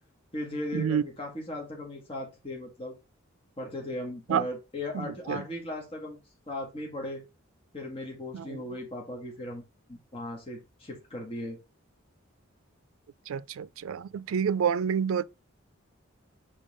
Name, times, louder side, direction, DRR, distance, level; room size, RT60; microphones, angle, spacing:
voice 1, 0.3-2.9 3.6-6.2 6.5-7.2 7.7-9.6 9.9-11.6, left 1 dB, 30° left, 1.6 m, -37 dB
voice 2, 4.9-5.4 8.3-8.6 13.3-15.2, right 7 dB, 90° right, 0.4 m, -28 dB
5.5 x 3.7 x 5.3 m
head